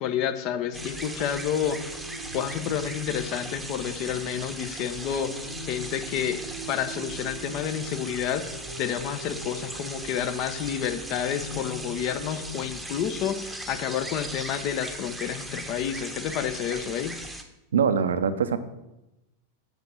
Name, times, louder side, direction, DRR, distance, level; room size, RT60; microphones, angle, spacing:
voice 1, 0.0-2.0 2.3-6.4 6.7-8.5 8.8-17.2, left 9 dB, 40° left, 9 dB, 0.9 m, -30 dB
sound 1, 0.7-17.4, right 1 dB, 5° right, 1.0 m, -38 dB
sound 2, 0.7-12.7, right 1 dB, 80° right, 1.1 m, -42 dB
voice 2, 17.7-18.6, right 6 dB, 65° right, 12 dB, 0.7 m, -23 dB
8.1 x 6.6 x 6.1 m, 0.95 s
figure-of-eight pair, 90°, 0 cm